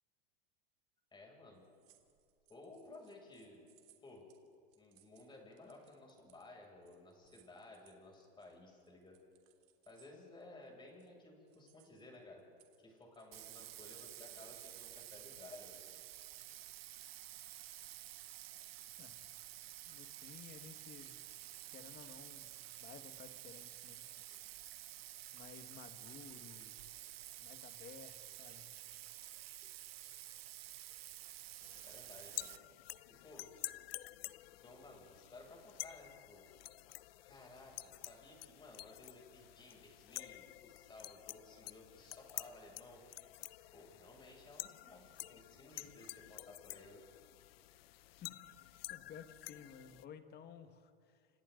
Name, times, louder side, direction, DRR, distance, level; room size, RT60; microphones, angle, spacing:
voice 1, 1.1-1.7 2.5-3.7 4.0-4.3 4.8-9.2 9.9-12.4 12.8-15.8 31.8-32.5 33.1-33.5 34.5-36.5 37.3-43.0 43.7-47.0, left 2 dB, 15° left, -1 dB, 7.2 m, -56 dB
sound 1, 1.5-11.1 11.5-15.2 15.9-16.6 17.0-17.2 18.0-20.2, right 14 dB, 50° right, 3.1 m, -72 dB
Bathtub (filling or washing), 13.3-32.6, right 14 dB, 90° right, 0.9 m, -51 dB
voice 2, 19.0-19.3 19.9-21.2 21.7-24.2 24.5-24.7 25.3-26.8 27.4-28.8 48.2-51.3, left 7 dB, 35° left, 8 dB, 1.8 m, -56 dB
sound 2, 31.6-50.0, left 16 dB, 80° left, 0.8 m, -50 dB
29.5 x 27.0 x 4.0 m, 2.4 s
supercardioid pair, 120°, 29 cm